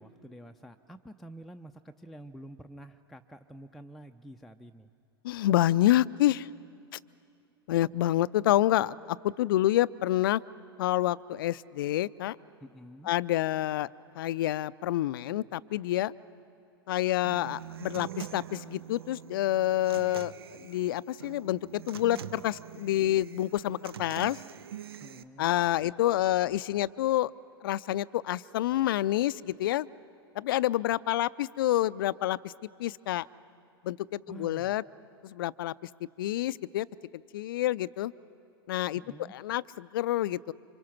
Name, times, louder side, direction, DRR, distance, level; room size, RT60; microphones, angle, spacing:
voice 1, 0.0-4.9 12.6-13.1 25.0-25.5 34.3-34.8 39.0-39.3, right 1 dB, ahead, 4 dB, 0.6 m, -48 dB
voice 2, 5.2-6.5 7.7-10.4 10.8-12.4 13.1-13.9 14.2-16.1 16.9-20.3 20.6-24.4 25.4-27.3 27.6-29.9 30.4-32.5 32.8-33.3 33.8-34.8 35.2-35.7 36.2-36.9 37.3-38.1 38.7-39.0 39.3-40.5, left 14 dB, 60° left, 20 dB, 0.5 m, -28 dB
Human voice / Acoustic guitar, 17.2-25.2, right 10 dB, 75° right, 0.8 m, -44 dB
28.0 x 25.5 x 5.9 m, 2.6 s
figure-of-eight pair, 95°, 13 cm